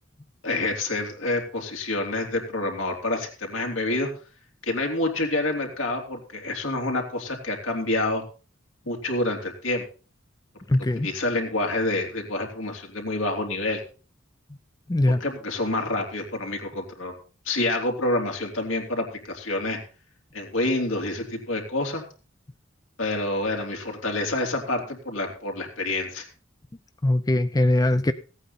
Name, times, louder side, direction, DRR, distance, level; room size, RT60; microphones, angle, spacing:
voice 1, 0.4-4.1 4.7-8.2 8.9-9.8 10.9-13.8 15.1-17.1 17.4-19.8 20.3-22.0 23.0-26.3, left 2 dB, 85° left, 3.2 m, -27 dB
voice 2, 10.7-11.1 14.9-15.2 27.0-28.1, left 1 dB, 20° left, 0.5 m, -21 dB
16.0 x 8.9 x 4.2 m
head